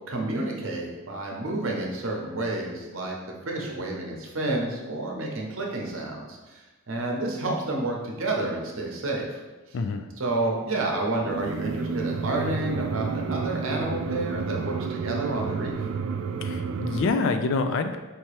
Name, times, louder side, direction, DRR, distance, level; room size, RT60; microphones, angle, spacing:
voice 1, 0.1-3.1 3.5-9.4 10.2-15.8, right 2 dB, 65° right, 0 dB, 0.8 m, -30 dB
voice 2, 9.7-10.1 16.4-18.0, left 4 dB, 65° left, 8 dB, 0.3 m, -26 dB
sound 1, 11.2-17.1, right 5 dB, 90° right, 0.3 m, -30 dB
4.5 x 2.8 x 3.2 m, 1.2 s
head